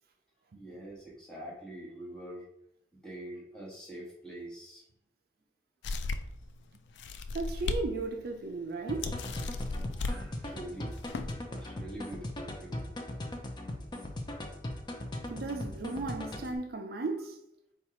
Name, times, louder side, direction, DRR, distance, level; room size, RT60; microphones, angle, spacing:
voice 1, 0.5-2.4 3.0-4.8 9.9-10.9 11.5-12.9 14.3-14.5, right 1 dB, 5° left, 1.4 m, -45 dB
sound 1, 5.8-6.4 7.0-7.8 8.3-8.4 9.0-10.2 10.9-11.3, left 3 dB, 80° left, 0.4 m, -35 dB
voice 2, 7.3-9.2 15.3-17.4, right 3 dB, 55° right, 0.4 m, -35 dB
sound 2, 8.9-16.6, left 1 dB, 25° left, 0.6 m, -39 dB
4.4 x 2.4 x 4.3 m
head